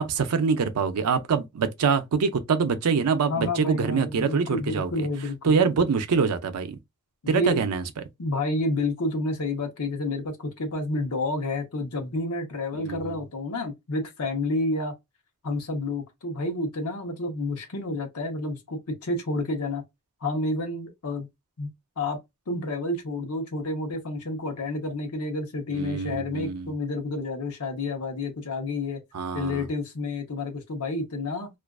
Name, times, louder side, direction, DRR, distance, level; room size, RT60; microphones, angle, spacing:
voice 1, 0.0-5.1 5.4-6.8 7.3-7.8 12.8-13.2 25.7-26.7 29.1-29.7, right 5 dB, 85° right, 0.5 m, -25 dB
voice 2, 3.3-5.6 7.2-7.6 8.2-14.9 15.4-19.8 20.2-21.3 21.6-21.7 22.0-22.2 22.5-29.0 29.3-31.5, left 2 dB, 80° left, 0.8 m, -29 dB
2.4 x 2.3 x 2.3 m
head